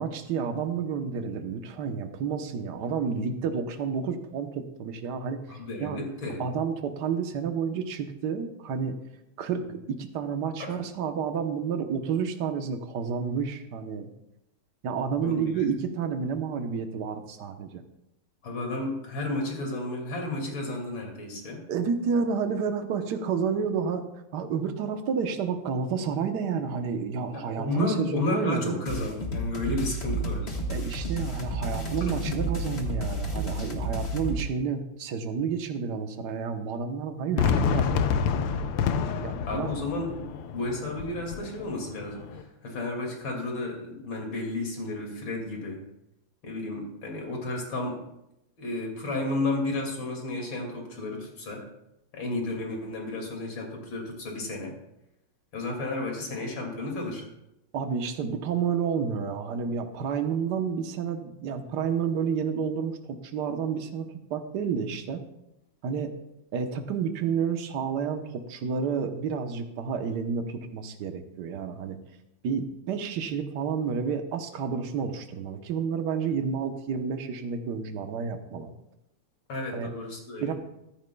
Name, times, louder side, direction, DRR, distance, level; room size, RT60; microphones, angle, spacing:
voice 1, 0.0-5.4 5.8-6.0 6.4-9.0 9.4-14.1 14.8-17.8 21.7-28.8 30.7-38.7 39.2-39.7 57.7-65.2 65.8-66.1 66.5-72.0 72.4-78.7 79.7-79.9 80.4-80.5, right 6 dB, 60° right, 6 dB, 1.4 m, -30 dB
voice 2, 5.5-6.4 10.6-10.8 15.2-15.6 18.4-21.6 27.3-30.5 32.2-32.3 39.1-39.2 39.5-45.8 46.4-48.0 48.6-51.6 52.1-54.7 55.5-57.2 79.5-80.5, left 2 dB, 60° left, 0 dB, 3.1 m, -32 dB
sound 1, 28.8-34.4, right 1 dB, 30° left, 1.6 m, -31 dB
Fireworks, 37.4-42.4, left 6 dB, 85° left, 1.6 m, -28 dB
15.0 x 13.5 x 2.3 m, 0.87 s
omnidirectional pair, 2.4 m